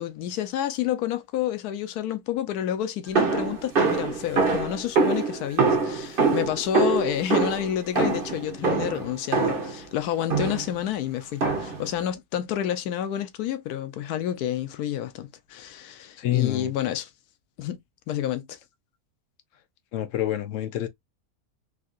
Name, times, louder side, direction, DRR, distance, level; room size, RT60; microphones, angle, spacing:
voice 1, 0.0-17.1 17.6-17.8 18.1-18.6, left 11 dB, 90° left, 1.1 m, -29 dB
sound 1, 3.2-9.8 10.3-10.8 11.4-11.9, right 4 dB, 40° right, 1.1 m, -24 dB
voice 2, 16.2-16.7 19.9-20.9, left 13 dB, 65° left, 0.9 m, -27 dB
3.7 x 2.6 x 2.3 m
omnidirectional pair, 1.6 m